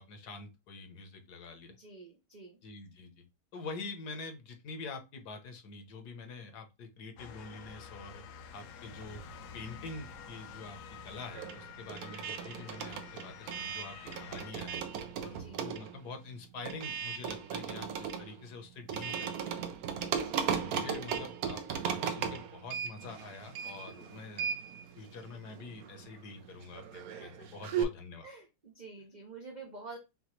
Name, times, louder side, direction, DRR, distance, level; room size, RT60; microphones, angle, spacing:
voice 1, 0.0-1.8 2.6-3.2 3.5-8.2 8.5-9.3 9.5-10.8 11.0-14.8 15.2-19.6 20.4-24.5 25.0-28.3, left 3 dB, 70° left, 6 dB, 1.4 m, -46 dB
voice 2, 1.7-2.6 15.3-15.7 20.1-20.5 27.1-27.5 28.2-30.0, right 3 dB, 50° right, 1 dB, 0.5 m, -49 dB
Motor vehicle (road) / Siren, 7.2-14.5, left 7 dB, 85° left, 1.3 m, -49 dB
sound 1, 9.0-10.3 10.5-27.8, right 7 dB, 65° right, 1.0 m, -37 dB
5.8 x 2.5 x 3.0 m, 0.25 s
omnidirectional pair, 1.9 m